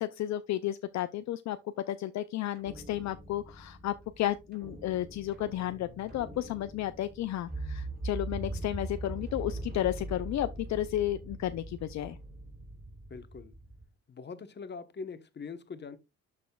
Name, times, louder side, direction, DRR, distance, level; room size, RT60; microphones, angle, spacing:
voice 1, 0.0-1.6 1.9-12.2, left 13 dB, 65° left, 0.5 m, -33 dB
sound 1, 2.6-13.8, right 2 dB, 35° right, 2.9 m, -42 dB
voice 2, 13.1-13.5 14.1-16.0, left 5 dB, 35° left, 1.1 m, -42 dB
12.0 x 4.2 x 2.3 m
cardioid pair, 90°, 30 cm